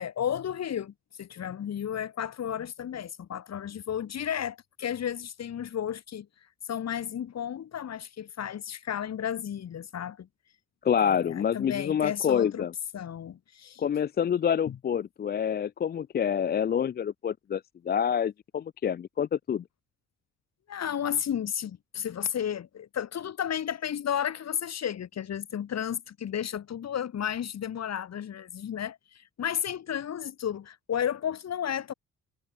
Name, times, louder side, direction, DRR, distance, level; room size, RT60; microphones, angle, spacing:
voice 1, 0.0-6.3 6.7-10.3 11.0-12.7 12.9-13.8 14.7-14.8 20.7-31.9, left 9 dB, 60° left, 4.0 m, -33 dB
voice 2, 10.8-12.7 13.8-19.6, left 8 dB, 35° left, 0.4 m, -27 dB
cardioid pair, 90°, 30 cm